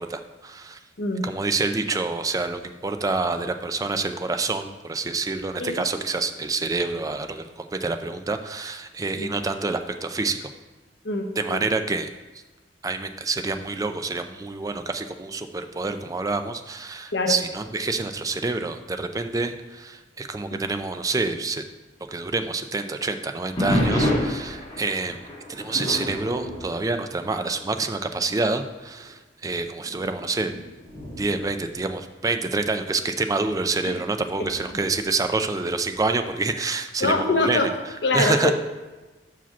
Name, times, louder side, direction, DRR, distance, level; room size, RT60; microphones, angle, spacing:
voice 1, 0.0-0.8 1.2-10.5 11.4-12.1 12.8-21.6 22.1-25.2 25.5-30.5 31.2-37.6 38.1-38.5, right 3 dB, 20° right, 8 dB, 0.4 m, -27 dB
voice 2, 11.0-11.6 17.1-17.3 20.5-20.6 33.8-33.9 34.4-34.5 37.0-38.5, left 2 dB, 75° left, 4 dB, 0.9 m, -24 dB
sound 1, 23.6-27.7 28.0-28.4 29.0-29.1 29.8-32.5 34.4-34.9, equal, 25° left, 2.1 m, -29 dB
5.7 x 4.9 x 5.8 m, 1.2 s
head